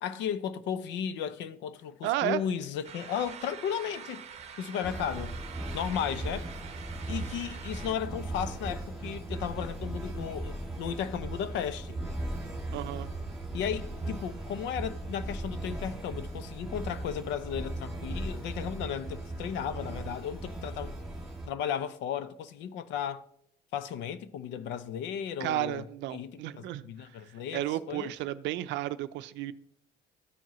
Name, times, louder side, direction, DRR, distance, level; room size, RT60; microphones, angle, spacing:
voice 1, 0.0-4.2 4.6-5.3 5.7-6.5 7.1-12.0 13.5-21.0 21.5-23.2 23.7-25.8 26.1-26.4 26.8-28.1, left 8 dB, 70° left, 0.6 m, -35 dB
voice 2, 2.0-2.4 12.7-13.1 25.4-26.8 27.5-29.5, right 14 dB, 70° right, 0.5 m, -32 dB
sound 1, 2.8-7.9, right 7 dB, 35° right, 0.8 m, -46 dB
sound 2, 4.8-21.5, right 2 dB, 5° right, 2.3 m, -38 dB
13.5 x 4.6 x 3.0 m
cardioid pair, 120°, 19 cm